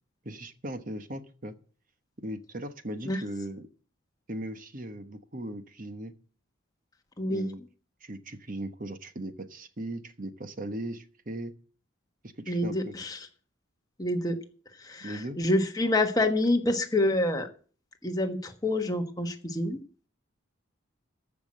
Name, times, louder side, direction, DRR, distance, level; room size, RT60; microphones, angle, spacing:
voice 1, 0.2-1.6 2.2-3.7 4.3-6.1 7.3-7.6 8.0-11.5 12.2-13.0 15.0-15.4, right 1 dB, 40° right, 10 dB, 1.1 m, -38 dB
voice 2, 7.2-7.5 12.5-13.3 14.0-14.4 14.8-17.5 18.0-19.8, left 1 dB, 15° left, 4 dB, 1.4 m, -27 dB
14.0 x 6.0 x 7.5 m, 0.41 s
head